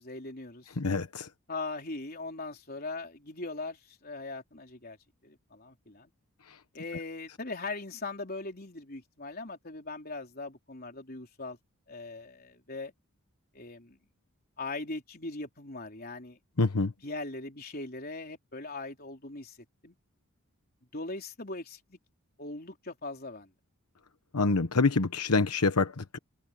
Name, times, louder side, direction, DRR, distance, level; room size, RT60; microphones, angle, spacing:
voice 1, 0.0-0.8 1.5-5.0 5.2-6.1 6.7-11.6 11.9-12.9 13.5-14.0 14.6-16.7 17.0-19.6 19.8-19.9 20.9-22.0 22.4-23.5, left 3 dB, 40° left, 3.9 m, -40 dB
voice 2, 0.8-1.3 16.6-16.9 24.3-26.2, left 3 dB, 85° left, 1.1 m, -26 dB
head